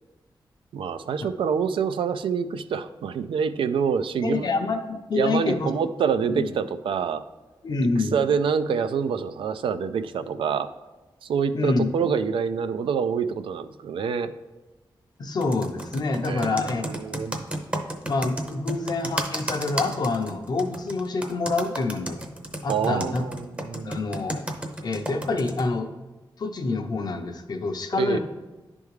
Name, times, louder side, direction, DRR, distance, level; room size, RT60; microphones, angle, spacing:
voice 1, 0.7-4.5 5.1-7.2 8.0-10.7 11.2-14.3 16.3-17.4 22.7-23.9 27.9-28.2, right 6 dB, 90° right, 11 dB, 0.3 m, -26 dB
voice 2, 4.2-5.8 6.3-6.5 7.6-8.2 11.5-11.9 15.2-16.9 18.0-22.2 22.6-23.2 23.8-24.4 24.8-25.9 26.4-28.2, left 3 dB, 50° left, 5 dB, 0.6 m, -27 dB
Computer keyboard, 15.4-25.6, right 1 dB, 15° right, 0.7 m, -32 dB
10.5 x 3.5 x 3.2 m, 1.2 s
wide cardioid pair, 115°, 9 cm